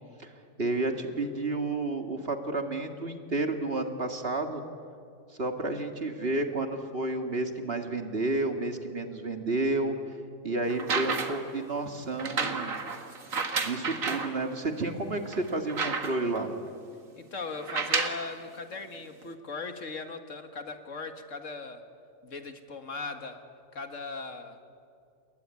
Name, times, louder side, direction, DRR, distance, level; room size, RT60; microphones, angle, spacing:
voice 1, 0.6-4.6 5.4-10.0 10.4-12.8 13.6-16.5, right 2 dB, 45° right, 5 dB, 2.3 m, -31 dB
sound 1, 10.7-11.5 12.2-14.3 14.9-15.0 15.3-16.4 17.6-18.3 19.2-19.3, right 4 dB, 85° right, 2.3 m, -31 dB
voice 2, 17.2-21.8 22.2-23.4 23.7-24.6, left 4 dB, 70° left, 7 dB, 2.1 m, -39 dB
28.5 x 21.5 x 9.7 m, 2.4 s
omnidirectional pair, 1.4 m